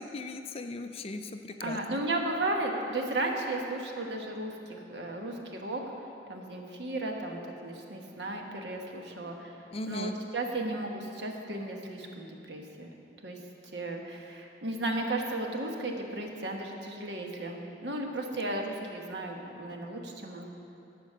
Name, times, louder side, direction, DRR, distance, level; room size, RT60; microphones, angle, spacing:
voice 1, 0.0-2.0 9.7-10.2, left 2 dB, 35° left, 7 dB, 0.4 m, -38 dB
voice 2, 1.6-5.3 5.6-5.8 6.3-9.5 9.9-12.9 13.2-13.4 13.7-20.5, right 2 dB, 70° right, 2 dB, 1.1 m, -34 dB
13.5 x 5.1 x 6.5 m, 2.8 s
head